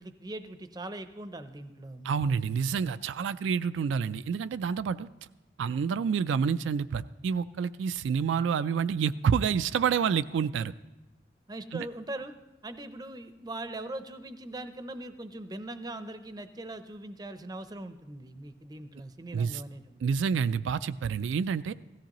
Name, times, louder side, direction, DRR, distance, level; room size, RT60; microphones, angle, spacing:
voice 1, 0.0-2.1 11.5-12.3 12.6-20.0, right 1 dB, 20° right, 10 dB, 0.5 m, -41 dB
voice 2, 2.0-5.1 5.6-10.7 11.7-11.9 19.3-19.6 20.0-21.7, right 6 dB, 80° right, 12 dB, 0.3 m, -28 dB
16.5 x 14.5 x 3.0 m, 1.1 s
head